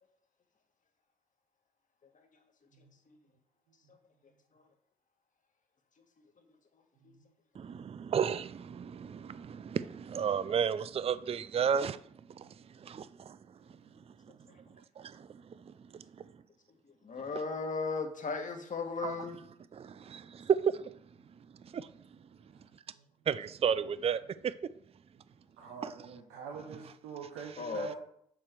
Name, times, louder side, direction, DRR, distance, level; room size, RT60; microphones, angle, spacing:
voice 1, 7.6-12.0 12.4-12.5 12.8-13.4 15.0-15.3 19.0-19.1 19.7-20.6 21.7-21.9 23.3-24.5 25.8-25.9, right 7 dB, 35° right, 0.4 m, -32 dB
voice 2, 17.0-19.4 27.6-27.9, left 4 dB, 45° left, 1.7 m, -36 dB
voice 3, 25.6-28.0, right 5 dB, 85° right, 1.2 m, -45 dB
7.6 x 5.0 x 4.5 m
hypercardioid pair, 50°, 18 cm